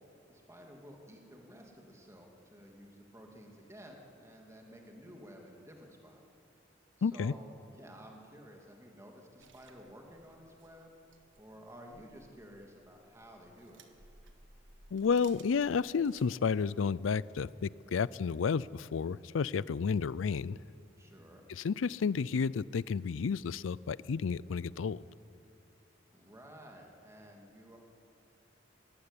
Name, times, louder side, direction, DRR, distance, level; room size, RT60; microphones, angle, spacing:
voice 1, 0.3-6.2 7.0-11.0 11.4-13.8 21.0-21.5 26.1-27.8, equal, 15° right, 1 dB, 2.5 m, -53 dB
voice 2, 7.0-7.3 14.9-20.6 21.5-25.0, left 5 dB, 90° left, 21 dB, 0.4 m, -31 dB
sound 1, 9.4-16.9, right 3 dB, 70° right, 1.5 m, -61 dB
19.5 x 15.5 x 9.8 m, 2.7 s
head